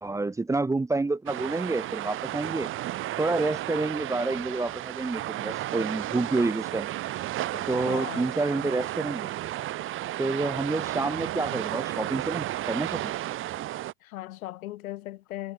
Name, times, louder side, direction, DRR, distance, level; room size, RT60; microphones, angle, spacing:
voice 1, 0.0-2.7 3.2-6.9 7.7-9.3 10.2-13.1, right 3 dB, 5° right, 1.4 m, -28 dB
sound 1, 1.3-13.9, right 14 dB, 25° right, 1.3 m, -33 dB
voice 2, 7.5-8.3 14.0-15.5, left 16 dB, 65° left, 5.3 m, -38 dB
hypercardioid pair, 130°, 45 cm